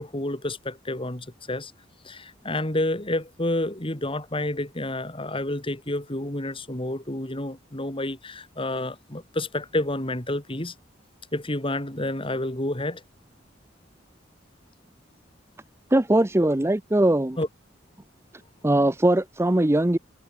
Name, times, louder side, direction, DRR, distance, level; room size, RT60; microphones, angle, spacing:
voice 1, 0.0-1.7 2.1-10.7 11.3-13.0 17.4-17.5, left 1 dB, 30° left, 3.6 m, -29 dB
voice 2, 15.9-17.4 18.6-20.0, right 1 dB, 15° right, 0.7 m, -20 dB
head